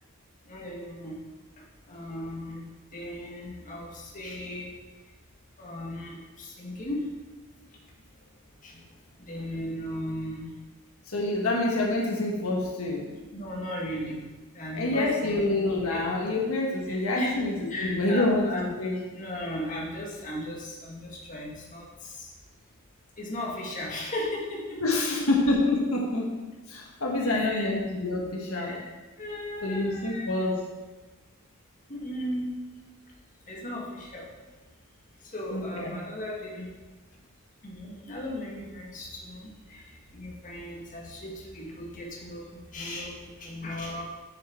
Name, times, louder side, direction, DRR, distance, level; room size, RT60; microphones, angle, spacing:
voice 1, 0.5-1.2 1.9-4.7 5.6-7.1 8.6-8.8 9.2-10.5 13.3-14.2 14.5-15.4 15.6-16.0 16.9-17.4 17.7-18.7 19.1-22.3 23.2-25.0 27.2-27.7 28.5-28.9 29.2-30.3 31.9-32.5 33.5-34.3 35.3-36.7 37.6-44.0, left 1 dB, 35° left, -3 dB, 1.8 m, -36 dB
voice 2, 11.1-13.0 14.7-19.0 24.8-26.3 26.7-28.8 29.6-30.6 35.5-36.0, left 2 dB, 75° left, -2 dB, 1.5 m, -27 dB
7.9 x 7.3 x 4.4 m, 1.2 s
head